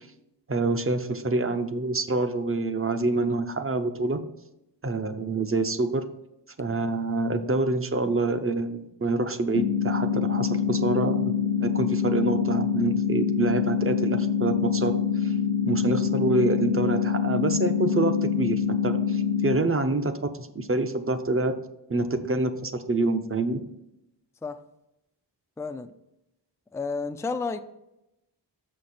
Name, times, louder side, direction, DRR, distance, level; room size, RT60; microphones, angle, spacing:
voice 1, 0.5-4.2 4.8-6.0 6.6-14.9 15.2-15.3 15.7-21.5 21.9-23.6, right 2 dB, 30° right, 0.7 m, -26 dB
sound 1, 9.6-19.6, left 7 dB, 75° left, 0.6 m, -25 dB
voice 2, 25.6-25.9 26.7-27.6, left 4 dB, 5° left, 0.3 m, -31 dB
6.5 x 6.4 x 4.2 m
wide cardioid pair, 70°, 44 cm